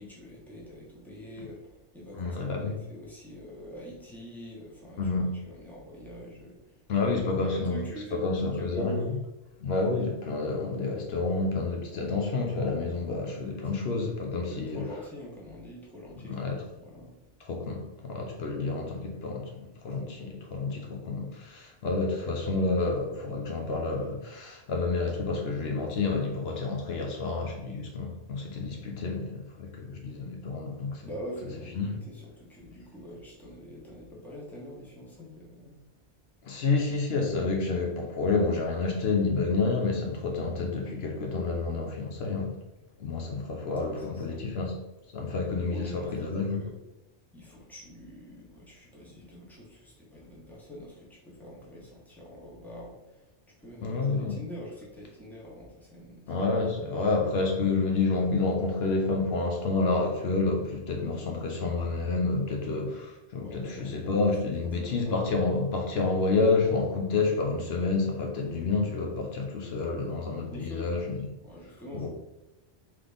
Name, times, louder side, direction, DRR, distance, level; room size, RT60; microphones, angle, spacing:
voice 1, 0.0-1.6 1.9-5.0 5.4-6.6 7.0-7.1 7.5-8.3 8.6-9.1 14.5-17.2 20.2-20.3 31.0-35.8 43.7-44.6 45.7-46.1 46.5-46.7 47.3-53.0 53.6-56.2 56.7-56.9 63.3-63.9 64.8-65.2 70.5-71.0 71.4-72.1, equal, ahead, -5 dB, 1.0 m, -44 dB
voice 2, 2.1-2.8 5.0-5.3 6.9-7.8 8.1-9.1 9.6-15.0 16.2-16.6 17.4-31.1 31.7-32.0 36.4-42.6 43.0-44.8 45.1-46.7 53.8-54.4 56.3-71.3 71.9-72.1, left 3 dB, 70° left, 1 dB, 0.9 m, -29 dB
3.8 x 3.3 x 3.4 m, 1.0 s
omnidirectional pair, 1.1 m